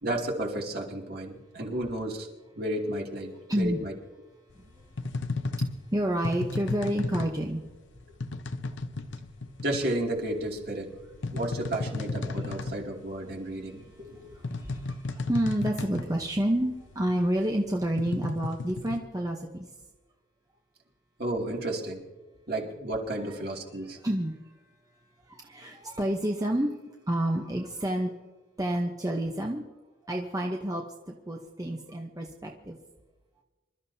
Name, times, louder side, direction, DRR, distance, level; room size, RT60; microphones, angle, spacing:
voice 1, 0.0-2.3 2.6-3.9 9.6-10.9 11.3-14.4 21.2-22.0 22.5-24.0, right 1 dB, 50° right, -1 dB, 2.5 m, -32 dB
voice 2, 3.5-3.8 4.5-5.1 5.9-7.6 13.2-19.7 23.2-23.3 24.0-24.7 25.2-26.8 27.1-28.1 28.6-29.6 30.0-32.8, right 1 dB, 20° right, 1 dB, 0.9 m, -30 dB
sound 1, 4.5-19.0, left 3 dB, 75° left, 0.8 m, -35 dB
26.5 x 13.0 x 2.8 m, 1.2 s
head